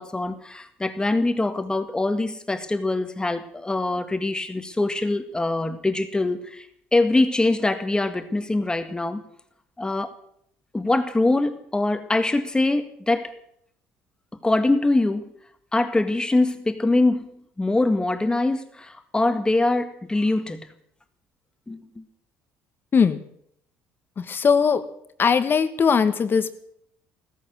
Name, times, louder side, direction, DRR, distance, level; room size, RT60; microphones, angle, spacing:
voice 1, 0.0-6.7 6.9-9.2 9.8-10.1 10.7-13.3 14.4-15.3 15.7-20.7 21.7-22.1, left 2 dB, 15° left, 9 dB, 1.8 m, -23 dB
voice 2, 24.2-24.8 25.2-26.5, left 6 dB, 40° left, 11 dB, 1.5 m, -20 dB
15.0 x 14.0 x 6.3 m, 0.70 s
supercardioid pair, 85°, 6 cm